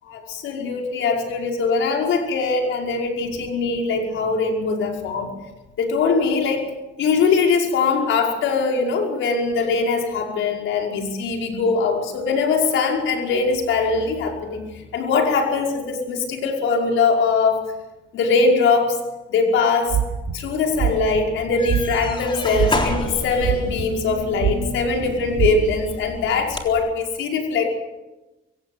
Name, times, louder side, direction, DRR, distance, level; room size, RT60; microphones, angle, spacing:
voice 1, 0.0-5.3 5.8-6.7 7.0-14.6 14.9-17.7 18.1-19.0 19.3-20.0 20.3-27.7, left 4 dB, 80° left, 1 dB, 5.3 m, -21 dB
sound 1, 19.9-20.3 20.7-21.2 21.7-22.1 22.5-23.0 23.4-24.0 24.4-24.8 25.3-25.5, right 10 dB, 75° right, 3.3 m, -22 dB
sound 2, 21.3-26.9, left 2 dB, 25° left, 3.8 m, -31 dB
24.0 x 17.0 x 7.9 m, 1.1 s
cardioid pair, 90°, 20 cm